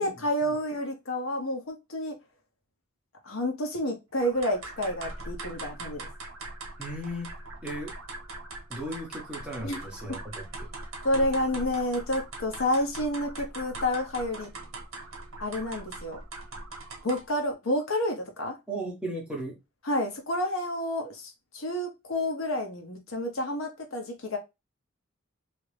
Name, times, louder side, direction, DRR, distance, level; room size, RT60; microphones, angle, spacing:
voice 1, 0.0-2.2 3.2-6.1 9.6-9.8 10.1-10.2 11.0-14.5 15.4-16.2 17.0-18.6 19.8-24.4, left 1 dB, 70° left, 0.8 m, -29 dB
sound 1, 4.2-17.4, right 2 dB, 65° right, 1.0 m, -41 dB
voice 2, 6.8-7.3 7.6-7.9 8.7-10.7 18.7-19.6, right 1 dB, 5° right, 0.9 m, -36 dB
2.9 x 2.5 x 3.3 m
head